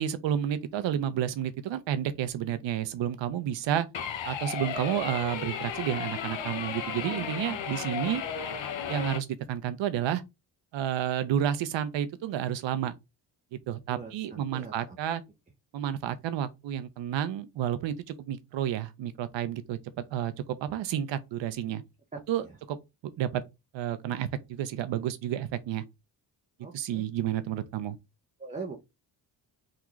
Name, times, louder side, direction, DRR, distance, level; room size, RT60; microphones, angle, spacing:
voice 1, 0.0-3.9 4.3-8.2 8.9-10.2 10.7-12.9 13.5-15.2 15.7-19.8 20.1-20.3 20.6-21.8 22.3-22.8 23.2-23.4 23.7-25.8 26.7-28.0, right 10 dB, 65° right, 0.6 m, -30 dB
sound 1, 3.9-9.2, left 8 dB, 70° left, 0.9 m, -34 dB
voice 2, 13.9-15.0 22.1-22.2 26.6-27.0 28.4-28.8, right 4 dB, 15° right, 0.6 m, -41 dB
3.5 x 2.3 x 3.0 m
cardioid pair, 70°, 48 cm